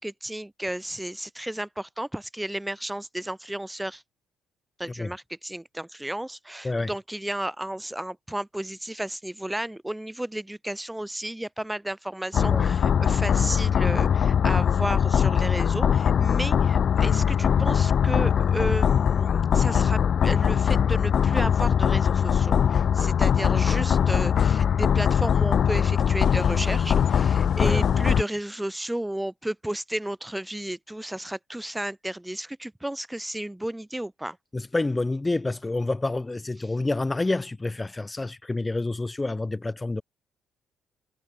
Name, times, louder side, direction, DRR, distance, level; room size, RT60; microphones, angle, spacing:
voice 1, 0.0-4.0 4.8-34.4, right 1 dB, 5° right, 6.3 m, -33 dB
sound 1, 12.3-28.2, left 8 dB, 55° left, 1.6 m, -21 dB
voice 2, 12.5-12.8 27.6-27.9 34.5-40.0, left 2 dB, 20° left, 1.7 m, -28 dB
supercardioid pair, 75°, 0 cm